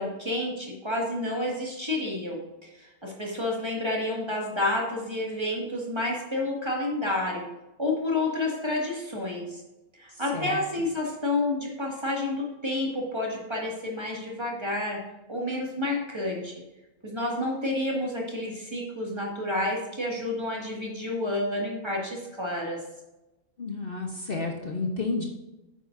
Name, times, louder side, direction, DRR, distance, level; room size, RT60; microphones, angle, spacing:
voice 1, 0.0-7.5 7.8-9.6 10.0-15.0 15.3-16.6 17.0-22.8, left 2 dB, 20° right, -2 dB, 2.1 m, -30 dB
voice 2, 23.6-25.3, left 3 dB, 45° left, 0 dB, 1.2 m, -31 dB
10.5 x 8.9 x 2.7 m, 1.0 s
omnidirectional pair, 1.4 m